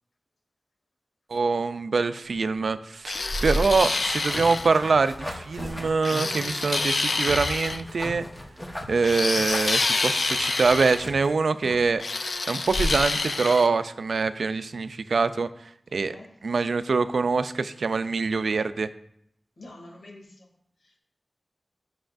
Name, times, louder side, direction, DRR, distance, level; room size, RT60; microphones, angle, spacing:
voice 1, 1.3-8.2 8.9-12.0 12.5-15.5 15.9-16.1 16.4-18.9, right 4 dB, 85° right, 12 dB, 0.4 m, -24 dB
sound 1, 2.5-2.6 3.1-4.8 5.5-6.2 10.7-10.9 11.3-11.4 11.8-11.9 12.3-12.4 12.7-13.0, equal, 45° left, 0.9 m, -32 dB
sound 2, 3.1-4.7 6.0-7.8 9.0-11.0 12.0-13.7, left 3 dB, 65° left, 0.5 m, -27 dB
sound 3, 3.7-11.9, left 1 dB, 20° left, 1.2 m, -39 dB
voice 2, 15.9-16.3 19.6-20.5 20.8-21.0, left 2 dB, 90° left, -1 dB, 2.5 m, -47 dB
11.5 x 6.1 x 2.5 m, 0.73 s
wide cardioid pair, 80°, 0 cm